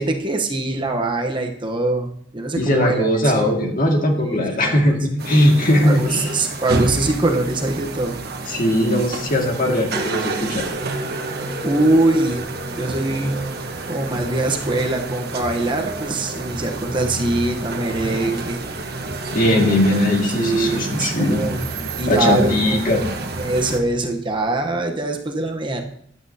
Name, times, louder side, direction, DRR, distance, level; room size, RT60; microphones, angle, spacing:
voice 1, 0.0-3.6 4.2-5.0 5.8-8.2 11.6-12.4 12.7-13.4 13.9-18.6 20.4-21.6 22.0-22.9 23.4-25.8, right 2 dB, 25° right, 3 dB, 1.0 m, -23 dB
voice 2, 2.6-6.4 8.4-10.7 19.3-21.4 22.1-23.0, left 1 dB, 45° left, 1 dB, 2.1 m, -19 dB
sound 1, 5.2-23.8, right 2 dB, 55° right, 1.4 m, -29 dB
15.5 x 10.5 x 2.8 m, 0.70 s
head